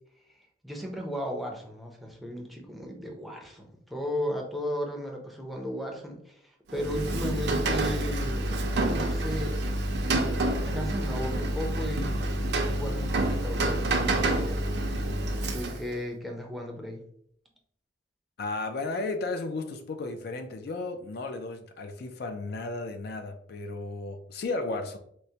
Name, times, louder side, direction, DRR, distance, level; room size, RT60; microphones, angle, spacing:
voice 1, 0.6-9.6 10.0-14.6 15.5-17.0, equal, ahead, 0.5 m, -35 dB
Rain, 6.7-16.0, right 1 dB, 70° right, 0.5 m, -28 dB
voice 2, 18.4-25.0, left 3 dB, 60° left, 0.4 m, -34 dB
4.5 x 2.0 x 2.7 m
head